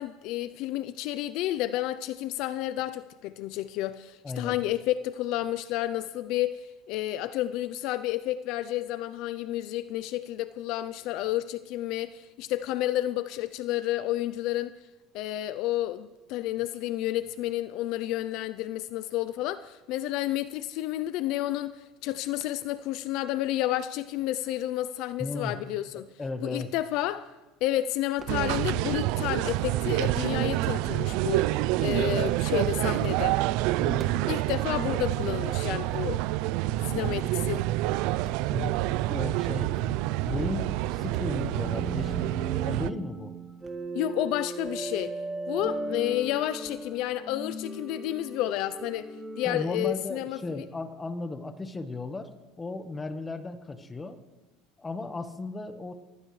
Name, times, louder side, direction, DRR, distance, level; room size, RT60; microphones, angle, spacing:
voice 1, 0.0-14.8 15.1-26.1 26.4-27.3 27.6-31.5 31.8-33.4 34.3-36.3 36.9-37.7 43.9-45.2 45.5-49.1 49.4-50.6, left 14 dB, 60° left, 0.5 m, -31 dB
voice 2, 4.2-4.6 25.2-25.6 25.9-26.7 33.8-34.2 38.5-42.3 42.6-43.3 49.4-54.2 54.8-55.9, left 3 dB, 15° left, 1.3 m, -35 dB
sound 1, 28.2-28.4 28.9-29.3 29.7-30.3 31.2-31.5 32.1-32.4 33.0-33.3 33.6-34.3 34.7-34.8 35.1-35.2 35.7-36.1 36.6-36.9 37.3-37.7 38.1-39.3 39.6-40.0 40.3-40.6 40.8-41.4 41.6-42.1 42.7-42.9 43.3-43.7 44.1-44.2 44.6-44.8 45.6-45.8 46.1-46.3 46.6-46.8, right 4 dB, 25° right, 1.9 m, -50 dB
sound 2, 28.3-42.9, right 16 dB, 65° right, 0.4 m, -27 dB
sound 3, 41.6-50.6, right 2 dB, 10° right, 1.7 m, -37 dB
22.0 x 15.5 x 3.2 m
supercardioid pair, 125°, 0 cm